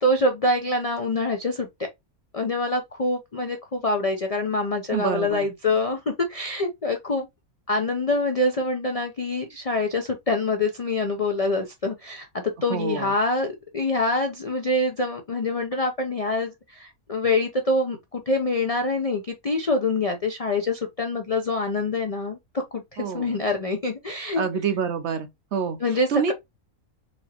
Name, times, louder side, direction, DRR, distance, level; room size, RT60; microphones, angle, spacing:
voice 1, 0.0-1.7 2.3-7.3 7.7-22.4 22.7-24.4 25.8-26.3, left 2 dB, 60° left, 0.3 m, -25 dB
voice 2, 4.9-5.5 12.7-13.1 23.0-23.4 24.4-25.8 26.1-26.3, right 6 dB, 65° right, 0.8 m, -27 dB
4.3 x 2.9 x 2.8 m
omnidirectional pair, 1.5 m